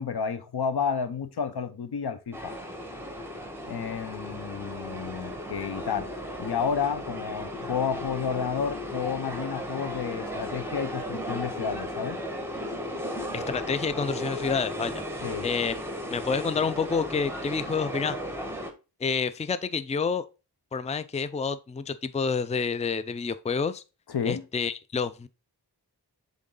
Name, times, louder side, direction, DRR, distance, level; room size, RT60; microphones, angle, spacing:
voice 1, 0.0-2.5 3.7-6.1 6.4-12.2 15.2-15.5 24.1-24.4, left 6 dB, 70° left, 0.9 m, -31 dB
sound 1, 2.3-18.7, equal, 5° right, 1.6 m, -35 dB
voice 2, 13.3-15.0 15.4-15.7 16.1-18.2 19.0-20.3 20.7-23.8 24.2-25.3, left 5 dB, 15° left, 0.5 m, -28 dB
7.8 x 3.7 x 3.8 m
cardioid pair, 40°, 40 cm